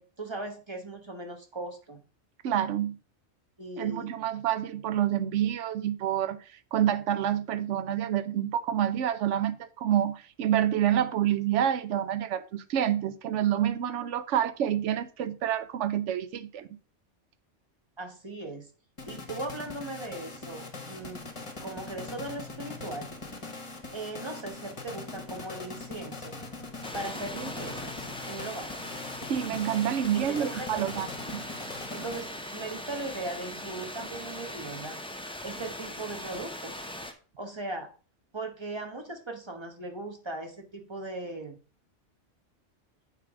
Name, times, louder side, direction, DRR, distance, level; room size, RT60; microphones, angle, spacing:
voice 1, 0.0-2.0 3.6-4.1 18.0-18.7 19.1-21.3 21.6-23.1 23.9-26.4 26.9-28.7 30.1-30.8 31.9-35.0 35.4-36.8 37.4-37.9 38.3-41.6, right 2 dB, 25° right, 1.1 m, -38 dB
voice 2, 2.4-3.0 3.8-16.7 29.3-31.4, right 10 dB, 75° right, 0.9 m, -28 dB
sound 1, 19.0-32.6, left 3 dB, 25° left, 1.1 m, -42 dB
sound 2, 26.8-37.1, left 1 dB, 5° left, 0.5 m, -40 dB
9.1 x 3.4 x 4.8 m
omnidirectional pair, 1.3 m